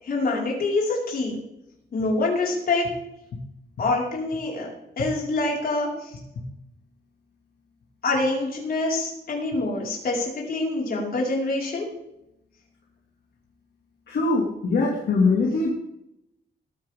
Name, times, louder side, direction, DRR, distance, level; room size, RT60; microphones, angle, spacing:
voice 1, 0.0-1.4 1.9-2.9 3.8-4.7 5.0-6.1 8.0-11.9, left 2 dB, 55° left, -3 dB, 5.3 m, -25 dB
voice 2, 14.1-15.7, left 3 dB, 75° left, -2 dB, 2.6 m, -22 dB
20.0 x 9.7 x 3.8 m, 0.83 s
wide cardioid pair, 180°, 18 cm